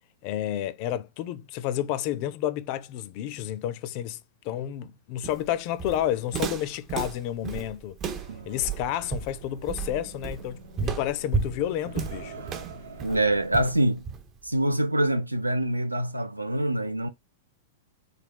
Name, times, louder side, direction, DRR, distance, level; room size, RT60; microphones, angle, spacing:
voice 1, 0.2-4.2 4.4-8.0 8.5-12.3, left 12 dB, 45° left, 0.3 m, -30 dB
Walk footsteps, 5.2-14.5, right 5 dB, 30° right, 0.5 m, -33 dB
sound 1, 8.0-13.5, right 3 dB, 70° right, 0.8 m, -44 dB
voice 2, 13.0-14.1 14.4-17.1, right 1 dB, 85° right, 0.4 m, -25 dB
3.3 x 2.3 x 3.7 m
figure-of-eight pair, 100°, 0 cm